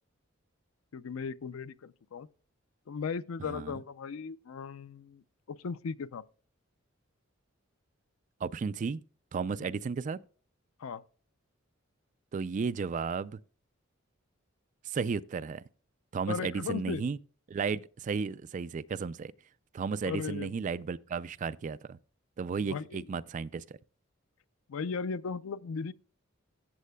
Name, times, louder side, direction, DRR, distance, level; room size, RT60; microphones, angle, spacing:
voice 1, 0.9-2.3 2.9-6.2 9.6-9.7 10.8-11.0 16.3-17.0 20.0-20.5 22.6-23.1 24.7-25.9, left 5 dB, 90° left, 0.4 m, -37 dB
voice 2, 3.4-3.7 8.4-9.0 9.3-10.2 12.3-13.4 14.9-15.6 16.1-17.2 17.5-19.3 19.7-22.0 22.4-23.6, right 5 dB, 40° right, 0.3 m, -34 dB
14.5 x 7.4 x 2.2 m
head